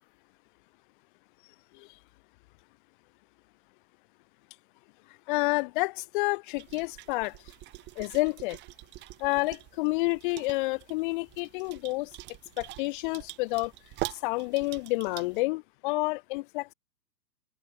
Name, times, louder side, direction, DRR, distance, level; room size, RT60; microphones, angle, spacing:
voice 1, 5.3-7.4 8.0-8.6 9.2-12.1 12.6-13.7 14.1-16.7, left 24 dB, 30° left, 2.8 m, -29 dB
sound 1, 6.5-15.4, right 19 dB, 20° right, 3.2 m, -44 dB
hypercardioid pair, 135°, 49 cm